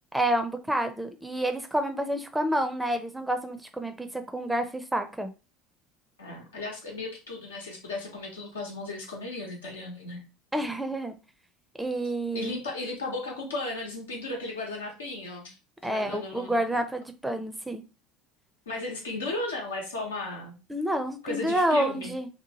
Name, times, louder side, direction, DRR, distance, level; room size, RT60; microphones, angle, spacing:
voice 1, 0.1-5.3 10.5-11.1 11.8-12.5 15.8-17.8 20.7-22.3, right 1 dB, 10° right, 0.5 m, -29 dB
voice 2, 6.2-10.3 12.3-15.6 15.8-16.8 18.7-20.6 21.2-22.1, left 2 dB, 85° left, 0.9 m, -35 dB
2.9 x 2.1 x 2.9 m
hypercardioid pair, 70°, 0 cm